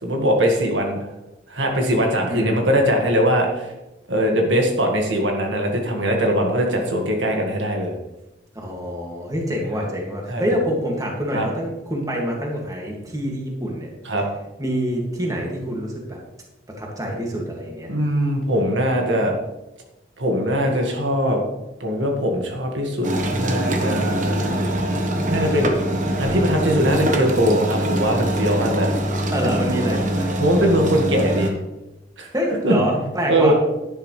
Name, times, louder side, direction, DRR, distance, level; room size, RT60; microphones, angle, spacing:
voice 1, 0.0-1.1 1.5-3.7 4.1-7.9 10.3-10.4 11.3-11.5 14.0-14.3 17.9-19.3 20.2-21.4 21.8-23.1 23.3-24.6 25.3-25.7 26.2-28.9 30.4-31.5 32.2-32.3 32.6-32.7 33.3-33.5, equal, 75° right, 2 dB, 1.8 m, -21 dB
voice 2, 2.3-2.7 8.5-13.9 14.6-16.2 16.8-17.9 29.3-30.4 32.3-33.5, equal, 20° right, -1 dB, 2.1 m, -26 dB
sound 1, 23.0-31.5, right 1 dB, 40° right, 1.3 m, -23 dB
11.0 x 11.0 x 3.3 m, 0.98 s
head